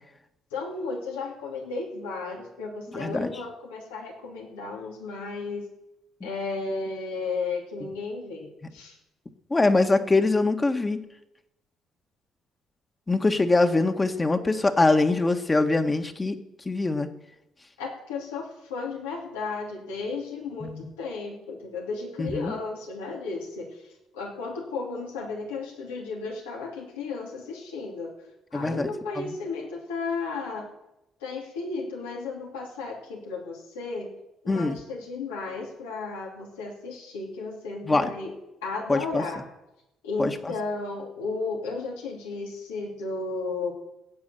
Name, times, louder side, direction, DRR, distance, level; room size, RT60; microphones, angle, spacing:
voice 1, 0.5-5.6 6.2-9.0 17.8-28.2 28.5-30.7 31.2-34.1 34.4-38.3 38.6-39.4 40.0-43.7, left 4 dB, 85° left, -1 dB, 2.9 m, -34 dB
voice 2, 2.9-3.3 7.8-7.9 9.5-11.0 13.1-16.3 16.6-17.1 20.6-20.9 22.2-22.5 28.5-28.9 29.2-29.3 34.5-34.8 37.9-38.1 38.9-39.2 40.2-40.3, left 3 dB, 25° left, 7 dB, 1.7 m, -23 dB
16.0 x 8.7 x 7.0 m, 0.91 s
hypercardioid pair, 50°, 0 cm